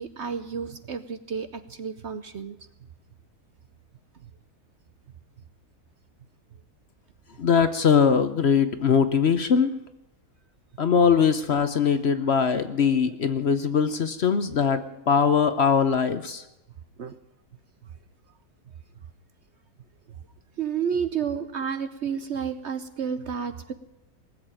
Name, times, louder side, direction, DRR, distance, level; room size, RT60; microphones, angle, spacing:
voice 1, 0.0-2.6 17.0-17.2 20.1-20.2 20.6-23.7, right 7 dB, 55° right, 11 dB, 0.9 m, -31 dB
voice 2, 7.4-9.8 10.8-16.4, left 6 dB, 50° left, 11 dB, 0.9 m, -21 dB
19.5 x 8.0 x 8.9 m, 0.91 s
omnidirectional pair, 1.7 m